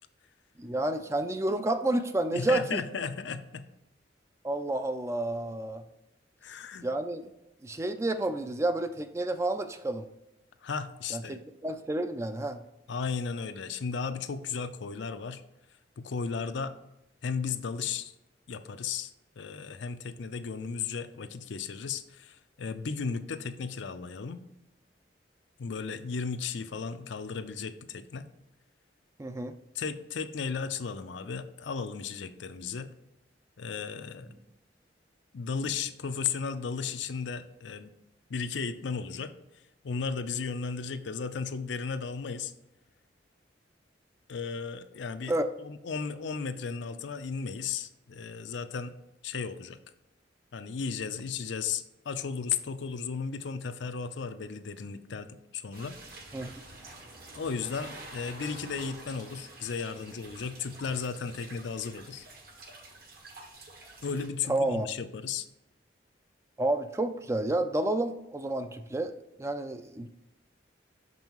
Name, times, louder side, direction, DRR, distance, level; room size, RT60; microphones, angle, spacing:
voice 1, 0.6-2.8 4.4-5.8 6.8-7.2 7.6-10.1 11.1-12.6 29.2-29.5 45.3-45.5 56.3-56.5 64.5-64.9 66.6-69.1 69.4-70.1, right 2 dB, 15° right, 9 dB, 0.3 m, -30 dB
voice 2, 2.3-3.6 6.4-6.8 10.6-11.4 12.9-15.4 16.0-16.7 17.2-18.1 18.5-19.1 19.4-24.4 25.6-28.3 29.7-32.9 33.6-34.3 35.3-37.9 38.3-39.3 39.8-42.5 44.3-48.9 49.2-49.8 50.5-56.0 57.3-62.3 64.0-65.5, left 5 dB, 75° left, 10 dB, 0.5 m, -35 dB
sound 1, 55.7-64.3, right 2 dB, 55° right, 1.3 m, -48 dB
6.3 x 5.4 x 3.0 m, 0.90 s
head